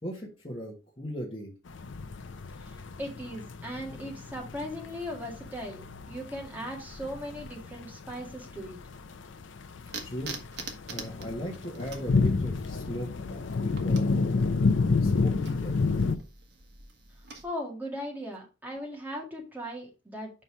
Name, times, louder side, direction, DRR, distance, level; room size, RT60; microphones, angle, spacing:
voice 1, 0.0-1.5 10.0-10.4 10.9-14.6 15.0-16.0, equal, 30° left, -3 dB, 1.5 m, -38 dB
sound 1, 1.7-16.2, left 4 dB, 80° left, 0.6 m, -30 dB
voice 2, 2.6-8.8 17.4-20.3, equal, 10° right, -1 dB, 2.0 m, -38 dB
sound 2, 9.8-17.4, right 4 dB, 60° right, 1.4 m, -45 dB
5.7 x 5.2 x 4.6 m, 0.30 s
head